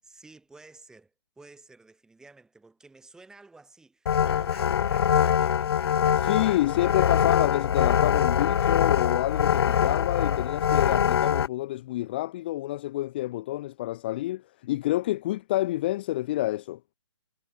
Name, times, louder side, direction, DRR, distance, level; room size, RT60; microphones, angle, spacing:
voice 1, 0.0-6.6, right 3 dB, 5° right, 7.6 m, -53 dB
sound 1, 4.1-11.5, left 8 dB, 55° left, 1.2 m, -23 dB
voice 2, 6.2-16.8, left 16 dB, 20° left, 0.3 m, -28 dB
hypercardioid pair, 160°, 15 cm